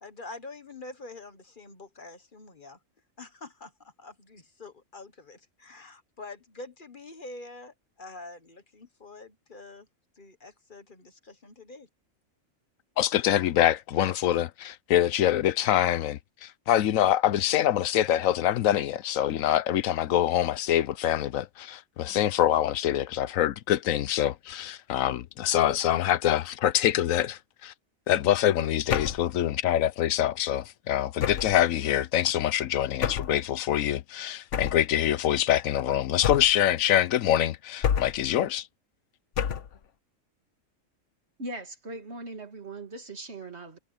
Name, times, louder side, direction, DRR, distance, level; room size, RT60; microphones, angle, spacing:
voice 1, 0.0-2.8 3.2-9.9 10.2-11.9, left 2 dB, 40° left, 1.4 m, -46 dB
voice 2, 13.0-27.7 28.1-38.6, left 11 dB, 90° left, 1.1 m, -25 dB
sound 1, 28.9-29.3 31.2-31.6 33.0-33.4 34.5-34.9 36.2-36.7 37.8-38.3 39.4-39.8, left 8 dB, 65° left, 1.2 m, -28 dB
voice 3, 41.4-43.8, right 2 dB, 55° right, 2.7 m, -39 dB
omnidirectional pair, 1.4 m